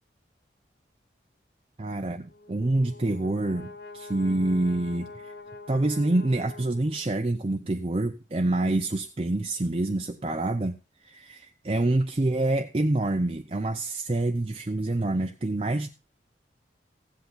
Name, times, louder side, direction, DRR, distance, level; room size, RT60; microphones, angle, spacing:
voice 1, 1.8-5.3 5.7-15.9, right 2 dB, 30° right, 0.5 m, -27 dB
Brass instrument, 2.2-7.3, left 3 dB, 55° left, 2.1 m, -45 dB
15.5 x 8.0 x 3.9 m
head